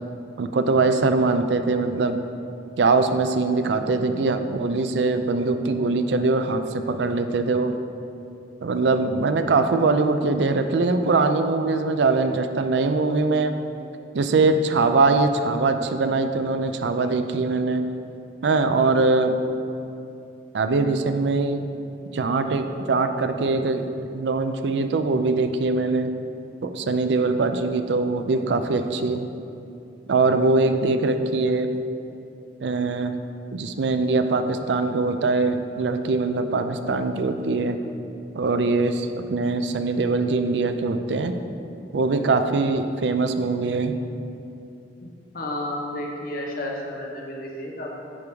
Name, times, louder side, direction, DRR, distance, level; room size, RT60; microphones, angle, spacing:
voice 1, 0.4-2.2 2.8-7.8 8.6-13.6 14.1-17.9 18.4-19.4 20.5-21.7 22.1-26.1 26.6-29.3 30.1-31.7 32.6-33.2 33.5-37.8 38.3-41.4 41.9-44.0, right 3 dB, 70° right, 8 dB, 0.4 m, -22 dB
voice 2, 45.0-48.0, left 1 dB, 55° left, -1 dB, 1.0 m, -32 dB
10.0 x 3.5 x 4.7 m, 2.7 s
head